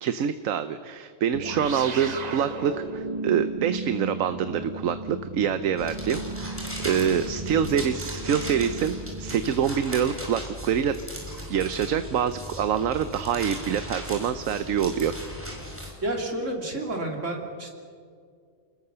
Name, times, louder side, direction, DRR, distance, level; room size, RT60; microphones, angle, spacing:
voice 1, 0.0-11.0 11.5-15.1, right 8 dB, 90° right, 11 dB, 1.2 m, -26 dB
sound 1, 1.3-10.2, right 3 dB, 35° right, 1.0 m, -35 dB
sound 2, 5.8-15.9, equal, 10° right, 5.2 m, -37 dB
voice 2, 16.0-17.7, right 1 dB, 70° right, 1 dB, 3.5 m, -30 dB
29.5 x 20.5 x 6.8 m, 2.2 s
omnidirectional pair, 1.3 m